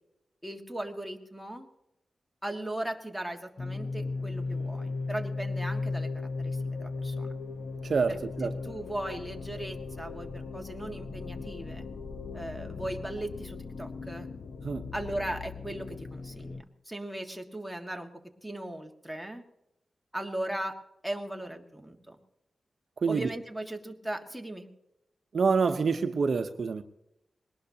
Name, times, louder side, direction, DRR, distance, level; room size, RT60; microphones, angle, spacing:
voice 1, 0.4-1.7 2.4-6.1 6.4-7.3 8.1-8.2 8.6-11.9 12.3-14.3 14.9-16.6 16.9-18.1 18.4-19.4 20.1-20.8 21.0-22.2 23.1-24.7, right 1 dB, ahead, 2 dB, 1.7 m, -37 dB
sound 1, 3.6-16.6, left 3 dB, 55° left, 0.8 m, -37 dB
voice 2, 7.8-8.5 14.6-14.8 23.0-23.3 25.3-26.8, right 5 dB, 60° right, 8 dB, 0.8 m, -27 dB
21.0 x 19.0 x 2.8 m, 0.87 s
wide cardioid pair, 120°, 0 cm